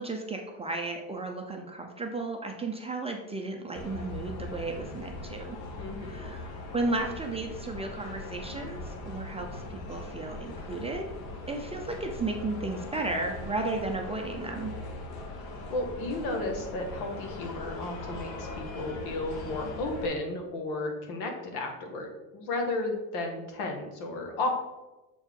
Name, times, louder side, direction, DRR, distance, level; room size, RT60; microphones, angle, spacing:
voice 1, 0.0-5.6 6.0-11.1 11.5-14.7, right 2 dB, 15° right, 2 dB, 0.4 m, -34 dB
sound 1, 3.7-20.1, left 2 dB, 50° left, 1.2 m, -40 dB
voice 2, 5.8-6.2 15.7-24.6, left 2 dB, 85° left, 2 dB, 1.7 m, -33 dB
6.9 x 4.5 x 3.7 m, 1.1 s
cardioid pair, 145°, 46 cm